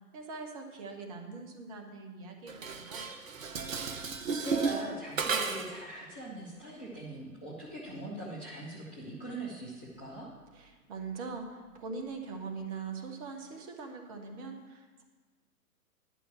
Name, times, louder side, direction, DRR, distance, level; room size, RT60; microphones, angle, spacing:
voice 1, 0.1-3.0 10.5-15.0, right 4 dB, 25° right, 4 dB, 1.1 m, -42 dB
Dishes pots and pans, 2.5-5.8, right 5 dB, 55° right, 0.9 m, -34 dB
voice 2, 4.2-10.3, right 1 dB, 10° left, -9 dB, 0.4 m, -42 dB
11.0 x 5.7 x 7.3 m, 1.3 s
figure-of-eight pair, 120°, 46 cm